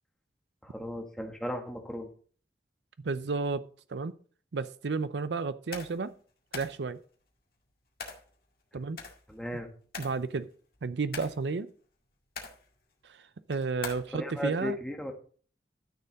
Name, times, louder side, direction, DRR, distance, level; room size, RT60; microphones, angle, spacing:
voice 1, 0.6-2.1 9.3-9.7 14.1-15.1, equal, 5° left, 1.5 m, -35 dB
voice 2, 3.0-4.1 4.5-6.1 6.5-7.0 8.7-9.0 10.0-10.5 10.8-11.7 13.5-14.8, right 4 dB, 85° right, 0.5 m, -32 dB
sound 1, 5.7-6.1 6.5-6.8 8.0-8.3 9.0-9.6 9.9-10.3 10.7-11.6 12.2-12.7 13.5-14.0, left 5 dB, 55° left, 2.0 m, -41 dB
12.0 x 6.8 x 4.1 m
head